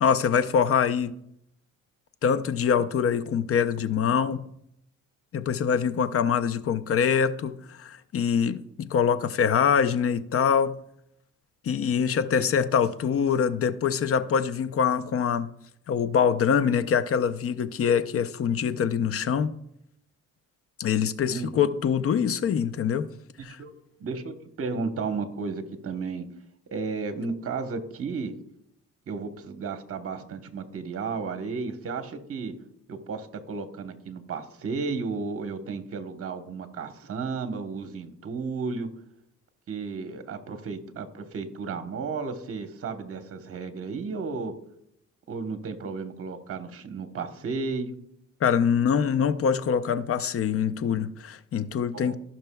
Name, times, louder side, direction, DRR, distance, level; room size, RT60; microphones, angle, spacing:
voice 1, 0.0-1.1 2.2-4.5 5.3-10.8 11.6-15.5 15.9-19.5 20.8-23.1 23.4-23.6 48.4-52.2, left 7 dB, 50° left, 0.6 m, -24 dB
voice 2, 21.3-21.7 23.4-23.7 24.0-26.3 26.7-28.3 29.1-32.5 32.9-38.9 39.7-44.5 45.3-47.9 51.9-52.2, right 4 dB, 50° right, 1.1 m, -33 dB
16.5 x 5.8 x 2.3 m
cardioid pair, 90°, 30 cm